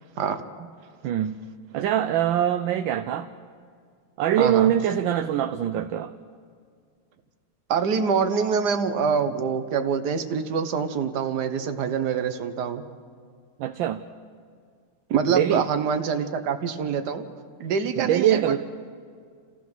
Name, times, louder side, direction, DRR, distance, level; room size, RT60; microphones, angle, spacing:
voice 1, 1.0-1.4 1.7-3.3 4.2-6.1 13.6-14.0 15.3-15.7 18.0-18.6, right 10 dB, 70° right, 8 dB, 1.3 m, -23 dB
voice 2, 4.4-4.7 7.7-12.8 15.1-17.2 17.6-18.6, right 6 dB, 55° right, 8 dB, 1.6 m, -25 dB
29.5 x 15.5 x 6.1 m, 2.1 s
omnidirectional pair, 2.4 m